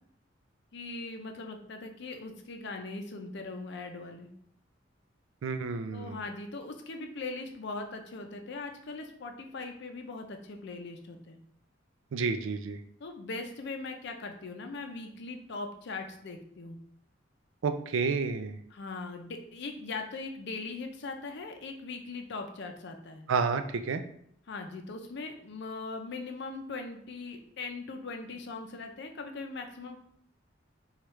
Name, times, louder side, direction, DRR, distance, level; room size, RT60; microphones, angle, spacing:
voice 1, 0.7-4.3 5.9-11.4 13.0-16.8 18.7-23.2 24.5-30.0, left 3 dB, 65° left, 5 dB, 0.5 m, -40 dB
voice 2, 5.4-6.2 12.1-12.8 17.6-18.6 23.3-24.0, right 5 dB, 80° right, 8 dB, 0.4 m, -30 dB
4.6 x 2.4 x 3.1 m, 0.65 s
head